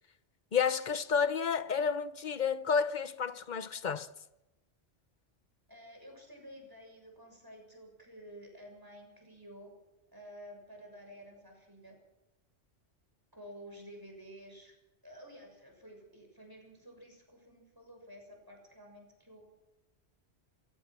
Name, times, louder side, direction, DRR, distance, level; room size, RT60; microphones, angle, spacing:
voice 1, 0.5-4.1, left 6 dB, 45° left, 1.0 m, -30 dB
voice 2, 5.7-9.7 10.1-12.0 13.3-14.7 15.0-19.4, equal, 20° right, 6.8 m, -52 dB
28.0 x 16.0 x 6.1 m
omnidirectional pair, 1.2 m